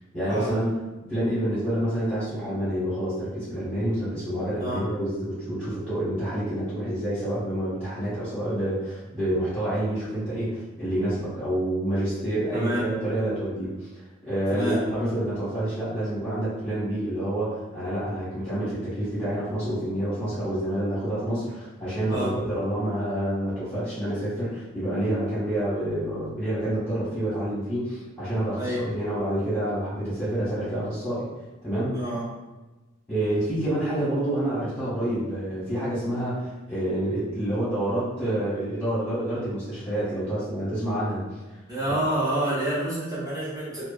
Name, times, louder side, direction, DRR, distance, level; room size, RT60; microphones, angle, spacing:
voice 1, 0.1-0.8 1.1-13.9 14.2-31.3 31.6-32.0 33.1-41.2, right 1 dB, 5° left, -13 dB, 1.3 m, -28 dB
voice 2, 12.5-12.9 14.5-14.8 22.1-22.4 28.5-28.8 31.9-32.3 41.7-43.8, right 1 dB, 15° right, -11 dB, 1.0 m, -28 dB
2.9 x 2.2 x 2.5 m, 1.1 s
head